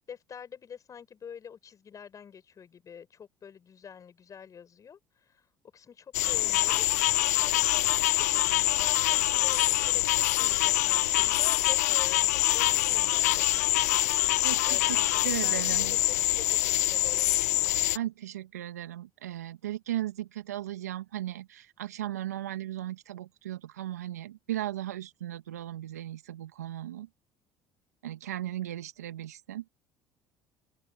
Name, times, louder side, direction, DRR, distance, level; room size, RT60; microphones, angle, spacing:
voice 1, 0.1-5.4 5.7-6.9 7.1-14.1 14.6-17.3, left 7 dB, 40° left, 7.1 m, -46 dB
sound 1, 6.1-18.0, left 17 dB, 80° left, 0.8 m, -25 dB
voice 2, 14.4-15.0 15.2-16.0 17.9-27.1 28.0-29.6, right 13 dB, 85° right, 2.1 m, -36 dB
open air
hypercardioid pair, 60°, 8 cm